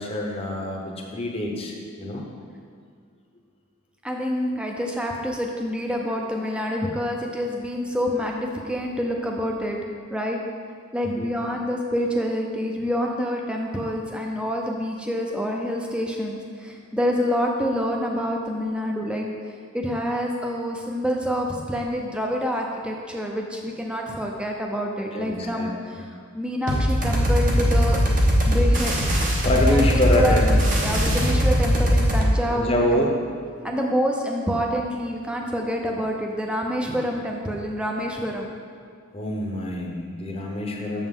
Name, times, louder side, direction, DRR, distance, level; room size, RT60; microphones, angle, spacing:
voice 1, 0.0-2.2 11.2-11.3 25.1-26.0 29.4-30.7 32.5-33.1 39.1-41.1, left 1 dB, 25° left, 0 dB, 0.8 m, -26 dB
voice 2, 4.0-9.8 10.1-10.4 10.9-19.3 19.7-26.0 26.3-28.0 28.5-28.9 29.6-29.8 30.1-30.4 30.8-33.1 33.6-38.5, equal, 5° right, 1 dB, 0.6 m, -27 dB
sound 1, 26.7-32.3, equal, 40° right, 1.0 m, -20 dB
7.1 x 7.0 x 3.7 m, 2.3 s
head